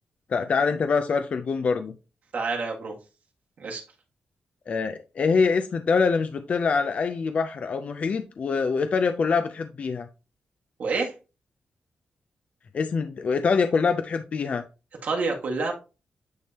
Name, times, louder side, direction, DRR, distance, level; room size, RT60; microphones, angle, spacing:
voice 1, 0.3-1.9 4.7-10.1 12.7-14.6, left 5 dB, 45° left, 0.4 m, -24 dB
voice 2, 2.3-3.0 3.6-3.8 10.8-11.1 15.0-15.7, right 4 dB, 55° right, 1.7 m, -27 dB
9.3 x 3.6 x 2.8 m
wide cardioid pair, 160°, 3 cm